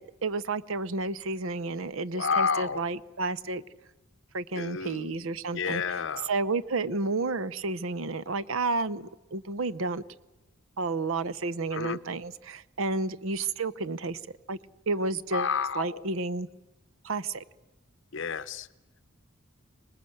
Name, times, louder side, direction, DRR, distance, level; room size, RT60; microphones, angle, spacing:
voice 1, 0.0-3.6 4.3-6.0 6.3-10.0 10.8-14.2 14.5-14.6 14.9-16.5 17.0-17.4, right 3 dB, 70° right, 17 dB, 0.7 m, -31 dB
voice 2, 2.2-2.8 4.6-5.2 5.5-6.3 11.7-12.0 15.3-16.0 18.1-18.7, left 6 dB, 60° left, 16 dB, 0.8 m, -30 dB
25.5 x 19.5 x 7.9 m, 1.1 s
head